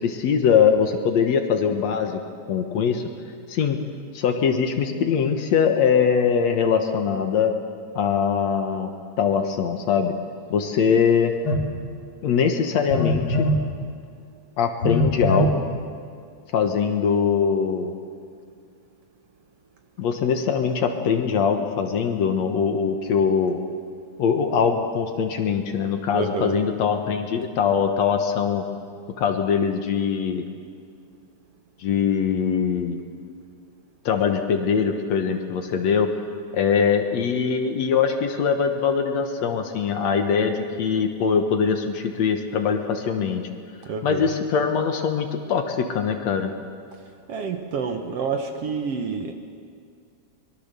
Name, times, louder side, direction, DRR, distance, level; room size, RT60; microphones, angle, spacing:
voice 1, 0.0-2.2 2.5-3.0 3.5-3.8 4.1-7.5 8.0-8.9 9.2-10.1 10.5-11.3 12.2-13.5 14.6-15.6 16.5-17.9 20.0-23.6 24.2-28.6 29.2-30.4 31.8-33.0 34.1-36.1 36.5-43.4 44.0-46.5, left 6 dB, 65° left, 5 dB, 2.4 m, -22 dB
Telephone, 11.5-11.7 12.9-13.6 14.8-15.6, left 1 dB, 45° left, 2.5 m, -21 dB
voice 2, 26.1-26.6 43.9-44.3 47.3-49.3, right 5 dB, 60° right, 5 dB, 1.9 m, -28 dB
24.0 x 21.5 x 6.9 m, 2.2 s
omnidirectional pair, 3.6 m